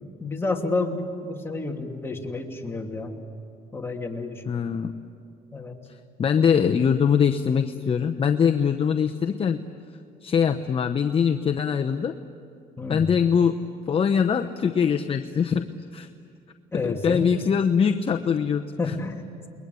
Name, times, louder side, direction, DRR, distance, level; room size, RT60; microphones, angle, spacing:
voice 1, 0.0-3.1 3.7-4.6 5.5-5.8 12.8-13.1 16.7-17.4 18.8-19.5, left 3 dB, 15° left, 1 dB, 2.7 m, -30 dB
voice 2, 4.5-5.0 6.2-9.6 10.2-12.1 12.9-13.6 13.9-16.1 16.8-18.6, left 7 dB, 35° left, 6 dB, 0.9 m, -22 dB
29.5 x 21.5 x 8.3 m, 2.4 s
cardioid pair, 110°, 17 cm